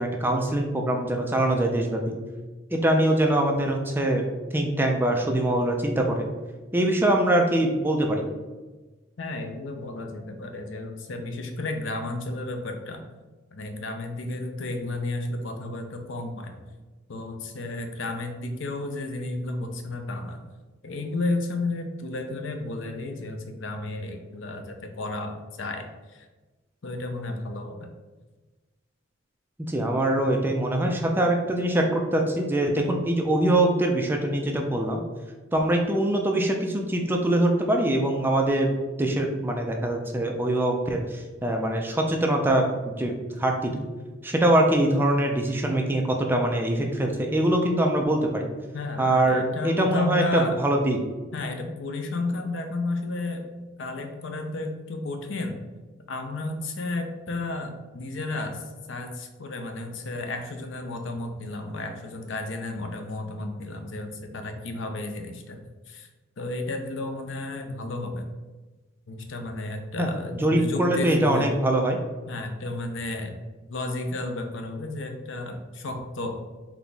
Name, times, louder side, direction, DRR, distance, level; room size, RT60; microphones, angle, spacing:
voice 1, 0.0-2.2 2.7-4.3 4.5-6.3 6.7-8.2 29.6-35.0 35.5-43.9 44.2-48.5 49.0-51.0 70.0-70.1 70.4-72.0, right 1 dB, 10° right, 2 dB, 0.4 m, -23 dB
voice 2, 9.2-13.0 13.5-16.5 17.1-20.4 20.8-26.3 26.8-27.9 48.7-50.6 51.3-55.6 56.1-66.1 66.4-68.3 69.1-71.6 72.3-73.3 73.7-76.4, left 2 dB, 70° left, 5 dB, 0.5 m, -32 dB
4.0 x 2.9 x 3.4 m, 1.2 s
head